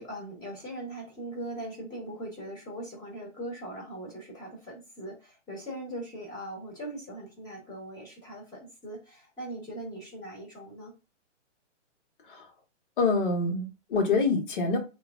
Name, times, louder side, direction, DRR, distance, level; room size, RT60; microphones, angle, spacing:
voice 1, 0.0-10.9, right 1 dB, 10° left, -4 dB, 1.3 m, -40 dB
voice 2, 13.0-14.8, left 3 dB, 45° left, 3 dB, 1.2 m, -26 dB
3.2 x 2.3 x 3.5 m, 0.29 s
hypercardioid pair, 160°, 36 cm